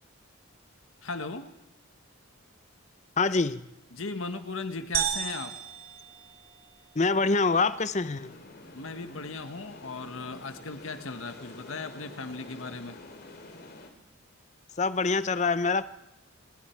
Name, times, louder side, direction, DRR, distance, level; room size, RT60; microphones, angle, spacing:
voice 1, 1.0-1.5 3.9-5.5 8.7-13.0, left 3 dB, 75° left, 9 dB, 1.5 m, -37 dB
voice 2, 3.2-3.6 6.9-8.3 14.8-15.8, left 4 dB, 35° left, 14 dB, 0.7 m, -25 dB
sound 1, 4.9-6.9, right 9 dB, 80° right, 2.7 m, -33 dB
sound 2, 8.0-13.9, left 2 dB, 50° left, 2.7 m, -48 dB
28.0 x 21.0 x 4.6 m, 0.90 s
head